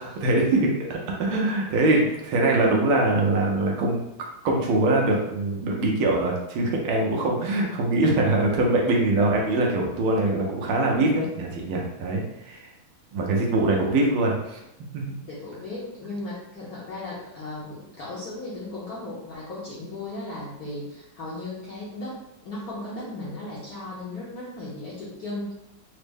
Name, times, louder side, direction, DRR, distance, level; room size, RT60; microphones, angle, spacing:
voice 1, 0.0-4.0 4.4-12.7 13.1-14.6 14.9-15.0, right 2 dB, 80° right, -1 dB, 1.5 m, -23 dB
voice 2, 15.3-25.5, left 2 dB, 60° left, -7 dB, 1.0 m, -36 dB
4.1 x 2.0 x 3.4 m, 0.88 s
omnidirectional pair, 2.4 m